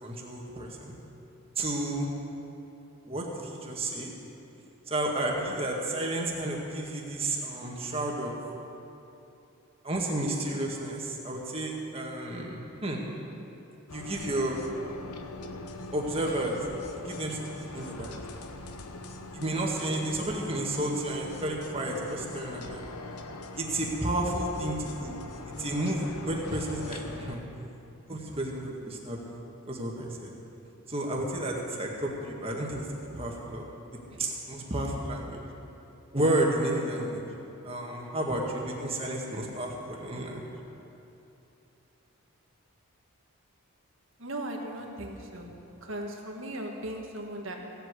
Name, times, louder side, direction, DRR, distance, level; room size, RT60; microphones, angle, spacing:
voice 1, 0.0-1.0 1.5-2.1 3.1-3.2 3.6-4.1 4.9-8.3 9.8-13.0 13.9-14.6 15.9-16.6 17.0-18.1 19.3-22.8 23.6-25.2 25.6-27.4 28.1-29.3 29.7-30.3 30.9-33.7 34.1-35.4 36.1-37.2 37.6-40.4, right 1 dB, 25° right, -1 dB, 1.8 m, -31 dB
sound 1, 13.9-27.4, left 2 dB, 85° left, 1.0 m, -42 dB
voice 2, 44.2-45.5 45.8-47.6, right 1 dB, 60° right, 1 dB, 1.8 m, -37 dB
17.0 x 8.0 x 8.3 m, 2.9 s
head